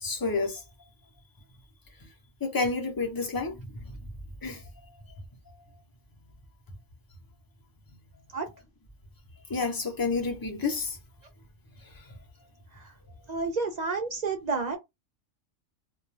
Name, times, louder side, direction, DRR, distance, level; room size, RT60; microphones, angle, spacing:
voice 1, 0.0-0.6 2.4-3.6 4.4-4.6 9.5-11.0, left 4 dB, 25° left, 0.5 m, -29 dB
voice 2, 13.3-14.8, right 4 dB, 65° right, 0.4 m, -30 dB
2.3 x 2.2 x 3.1 m
omnidirectional pair, 1.3 m